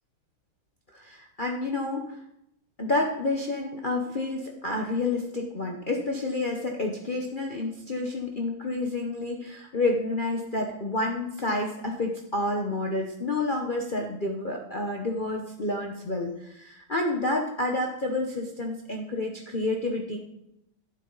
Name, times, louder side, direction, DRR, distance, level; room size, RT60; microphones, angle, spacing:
voice 1, 0.9-2.2 2.8-20.2, left 2 dB, 70° left, 0 dB, 0.4 m, -29 dB
12.0 x 9.8 x 3.9 m, 0.81 s
omnidirectional pair, 2.4 m